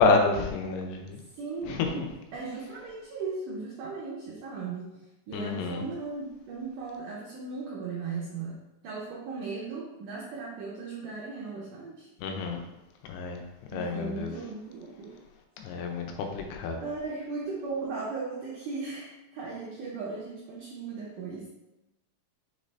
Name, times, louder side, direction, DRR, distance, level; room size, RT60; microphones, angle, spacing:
voice 1, 0.0-1.2 1.7-1.8 5.3-5.8 12.2-12.6 13.1-13.4 13.7-14.3 15.6-16.1 16.3-16.8, left 3 dB, 85° left, 3 dB, 2.6 m, -27 dB
voice 2, 1.4-5.0 5.3-12.1 13.7-15.2 16.8-21.5, right 4 dB, 85° right, -4 dB, 1.8 m, -37 dB
6.2 x 2.6 x 3.1 m, 0.98 s
omnidirectional pair, 4.5 m